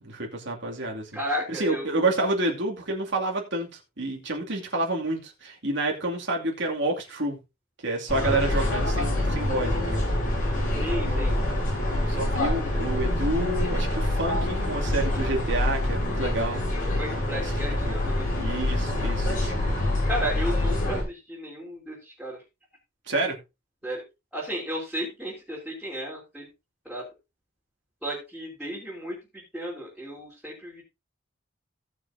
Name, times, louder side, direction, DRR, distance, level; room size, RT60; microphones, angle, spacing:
voice 1, 0.0-1.1 1.5-3.7 4.0-7.4 7.8-10.1 10.9-11.4 12.0-16.6 17.4-17.5 17.9-18.0 18.4-19.5 23.1-23.4, right 2 dB, 55° right, 2.6 m, -29 dB
voice 2, 1.1-2.0 8.2-8.4 10.7-11.3 17.0-18.2 20.0-22.4 23.8-24.0 24.3-26.5 26.9-27.1 28.0-29.2 29.5-30.8, equal, ahead, 3.5 m, -33 dB
sound 1, 8.1-21.0, left 1 dB, 40° left, 6.0 m, -26 dB
18.0 x 6.2 x 2.8 m
head